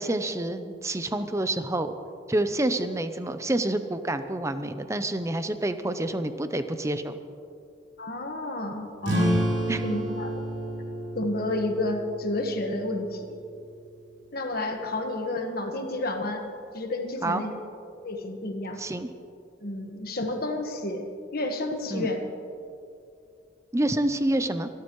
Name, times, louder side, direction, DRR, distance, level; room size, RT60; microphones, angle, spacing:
voice 1, 0.0-1.9 2.3-7.1 9.7-9.8 17.2-17.4 18.8-19.1 21.9-22.1 23.7-24.7, right 1 dB, 15° right, 9 dB, 0.6 m, -28 dB
voice 2, 8.0-9.3 9.8-10.4 11.1-13.4 14.3-16.4 16.7-17.5 18.0-18.8 19.6-21.1 21.3-22.2, left 2 dB, 50° left, 4 dB, 1.5 m, -30 dB
sound 1, 9.0-14.1, equal, 60° right, 4.0 m, -30 dB
25.0 x 13.0 x 3.1 m, 2.5 s
head